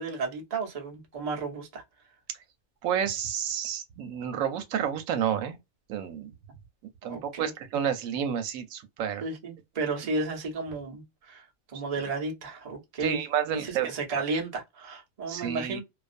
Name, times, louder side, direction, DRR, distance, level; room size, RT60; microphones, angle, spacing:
voice 1, 0.0-1.8 7.0-7.5 9.2-13.2 13.5-15.8, right 3 dB, 35° right, 0.7 m, -33 dB
voice 2, 2.8-5.6 5.9-6.3 7.0-9.2 13.0-13.9 14.2-14.3 15.3-15.8, right 9 dB, 85° right, 1.0 m, -30 dB
2.3 x 2.3 x 2.4 m
omnidirectional pair, 1.4 m